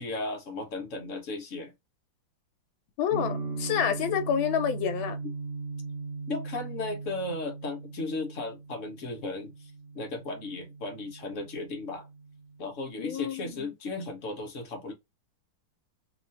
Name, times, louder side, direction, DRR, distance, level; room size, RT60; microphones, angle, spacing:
voice 1, 0.0-1.7 6.3-12.0 12.6-14.9, left 2 dB, 50° left, 1.0 m, -35 dB
voice 2, 3.0-5.2 13.0-13.7, left 9 dB, 85° left, 1.5 m, -28 dB
sound 1, 3.1-12.9, right 3 dB, 45° right, 0.9 m, -39 dB
3.0 x 2.9 x 2.6 m
omnidirectional pair, 2.1 m